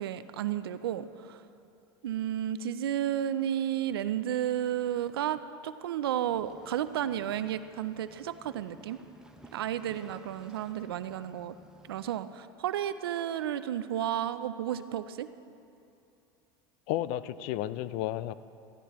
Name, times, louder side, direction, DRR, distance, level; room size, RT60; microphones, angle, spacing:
voice 1, 0.0-1.4 2.0-9.0 9.5-11.6 11.9-15.3, right 11 dB, 90° right, 13 dB, 0.5 m, -32 dB
sound 1, 6.3-12.1, right 1 dB, 5° right, 1.0 m, -56 dB
voice 2, 16.9-18.3, left 13 dB, 65° left, 16 dB, 0.5 m, -32 dB
16.0 x 14.0 x 3.0 m, 2.6 s
hypercardioid pair, 90°, 12 cm